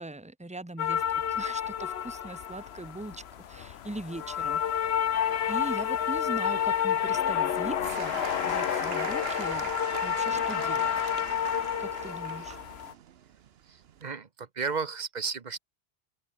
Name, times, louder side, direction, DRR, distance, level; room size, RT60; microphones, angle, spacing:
voice 1, 0.0-3.2 3.5-4.9 5.5-9.7 10.0-11.1 11.8-12.6, right 2 dB, 5° right, 1.3 m, -40 dB
sound 1, 0.8-12.9, left 9 dB, 65° left, 1.0 m, -30 dB
Applause / Crowd, 7.8-14.1, right 9 dB, 65° right, 1.0 m, -41 dB
voice 2, 13.6-15.6, right 5 dB, 40° right, 1.0 m, -34 dB
open air
omnidirectional pair, 1.2 m